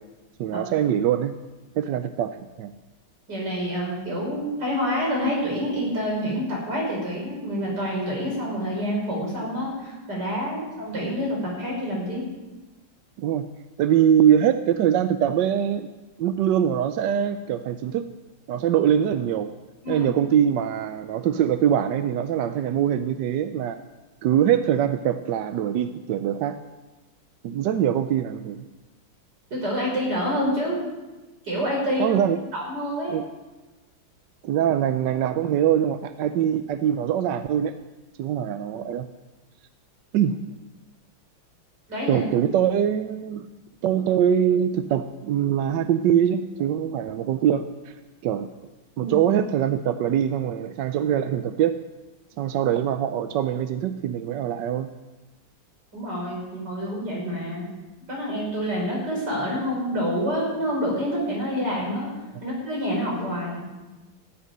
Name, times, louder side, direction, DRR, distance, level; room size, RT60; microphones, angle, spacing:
voice 1, 0.4-1.3 1.8-2.7 13.2-13.5 13.8-15.9 16.2-18.1 18.5-19.5 19.9-23.8 24.2-26.6 27.4-28.6 32.0-32.4 33.1-33.2 34.4-37.7 38.2-39.1 40.1-40.6 42.1-43.5 43.8-47.9 48.2-48.5 49.0-51.8 52.4-54.9, right 9 dB, 70° right, 9 dB, 1.2 m, -23 dB
voice 2, 3.3-12.2 19.8-20.1 29.5-30.8 31.4-32.2 32.5-33.2 41.9-42.3 49.0-49.1 55.9-57.7 58.1-62.1 62.4-63.6, equal, 55° right, -3 dB, 6.3 m, -27 dB
15.0 x 8.3 x 10.0 m, 1.2 s
omnidirectional pair, 2.2 m